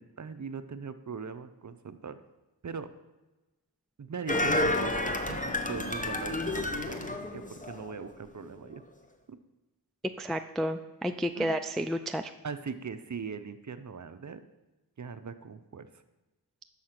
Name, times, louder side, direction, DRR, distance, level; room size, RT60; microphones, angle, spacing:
voice 1, 0.0-2.2 2.6-2.9 4.0-4.9 5.3-8.8 9.3-9.4 11.4-11.5 12.4-14.4 15.0-15.9, right 5 dB, 45° right, 11 dB, 0.6 m, -40 dB
sound 1, 4.3-8.0 8.4-8.5, left 1 dB, 20° left, 0.8 m, -30 dB
voice 2, 10.2-12.3, equal, ahead, 7 dB, 0.3 m, -31 dB
6.3 x 5.7 x 5.8 m, 1.1 s
wide cardioid pair, 45°, 40 cm